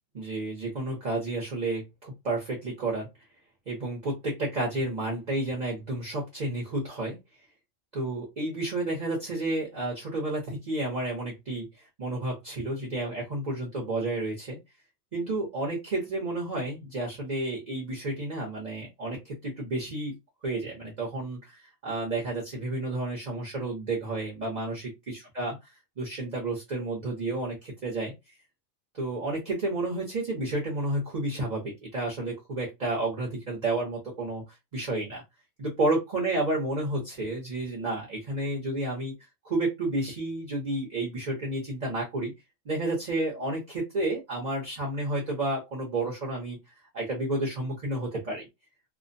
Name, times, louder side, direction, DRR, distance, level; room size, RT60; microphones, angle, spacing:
voice 1, 0.1-3.1 3.7-7.2 7.9-11.7 12.0-14.6 15.1-20.2 20.4-25.6 26.0-28.1 28.9-34.4 34.7-35.2 35.6-39.1 39.4-42.3 42.6-46.6 46.9-48.5, right 2 dB, 40° right, -3 dB, 0.7 m, -31 dB
2.4 x 2.1 x 2.5 m, 0.21 s
omnidirectional pair, 1.4 m